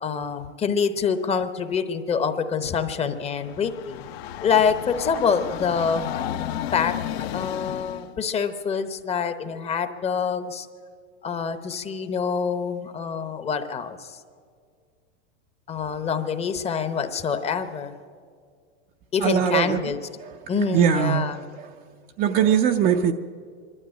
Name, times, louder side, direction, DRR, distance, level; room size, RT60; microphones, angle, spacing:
voice 1, 0.0-4.0 4.4-6.1 6.7-7.0 7.3-10.7 11.2-14.2 15.7-17.9 19.1-20.0 20.5-21.4, left 6 dB, 20° left, 10 dB, 0.8 m, -26 dB
Train, 3.2-8.1, left 11 dB, 60° left, 0.9 m, -33 dB
voice 2, 19.2-19.8 20.2-21.7 22.2-23.1, right 8 dB, 25° right, 6 dB, 0.5 m, -22 dB
24.0 x 12.5 x 8.8 m, 2.1 s
supercardioid pair, 140°, 35 cm